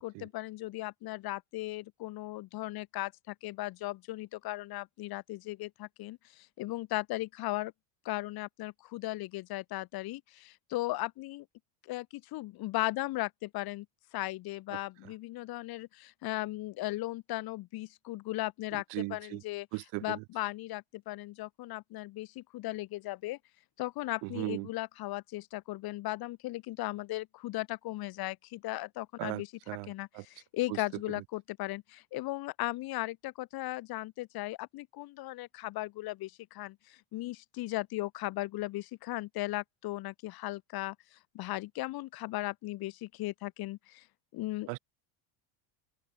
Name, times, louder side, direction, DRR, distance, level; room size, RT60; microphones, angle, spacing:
voice 1, 0.0-7.7 8.0-11.5 11.8-13.9 14.1-19.7 20.0-23.4 23.8-29.5 29.9-44.1 44.3-44.7, left 18 dB, 50° left, 7.2 m, -37 dB
voice 2, 14.7-15.1 18.7-19.4 19.7-20.2 24.2-24.7 29.2-30.2 30.7-30.8 31.1-31.2 44.7-44.8, right 32 dB, 70° right, 5.1 m, -38 dB
open air
cardioid pair, 170°, 46 cm